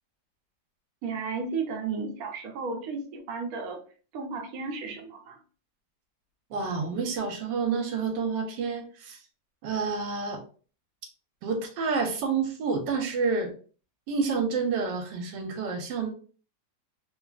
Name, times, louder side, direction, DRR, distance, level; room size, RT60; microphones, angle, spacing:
voice 1, 1.0-3.8 4.1-5.4, right 4 dB, 65° right, 2 dB, 1.0 m, -33 dB
voice 2, 6.5-9.2 9.6-10.4 11.4-13.5 14.1-16.1, right 5 dB, 85° right, 4 dB, 1.3 m, -29 dB
3.0 x 2.3 x 2.3 m, 0.39 s
omnidirectional pair, 1.9 m